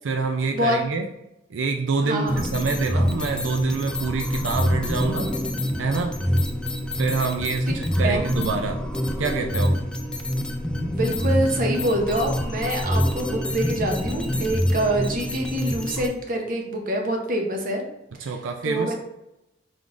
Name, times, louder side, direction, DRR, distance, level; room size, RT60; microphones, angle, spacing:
voice 1, 0.0-1.1 1.5-5.3 5.8-6.1 7.0-8.8 9.2-9.8 18.2-19.0, right 4 dB, 90° right, 4 dB, 0.4 m, -26 dB
voice 2, 2.0-2.5 8.0-8.2 10.8-17.8 18.6-19.0, right 1 dB, 50° right, 2 dB, 0.8 m, -25 dB
sound 1, 2.3-16.1, equal, 5° left, 0.3 m, -26 dB
4.7 x 3.7 x 2.5 m, 0.90 s
head